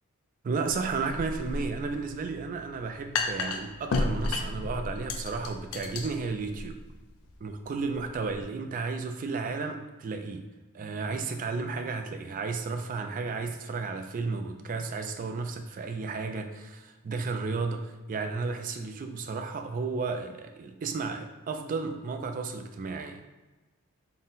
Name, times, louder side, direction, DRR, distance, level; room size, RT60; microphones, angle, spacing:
voice 1, 0.4-6.8 7.4-10.4 10.7-23.2, right 4 dB, 35° right, 6 dB, 0.3 m, -33 dB
sound 1, 0.6-8.4, left 3 dB, 70° left, 0.4 m, -34 dB
3.9 x 2.1 x 3.9 m, 1.2 s
head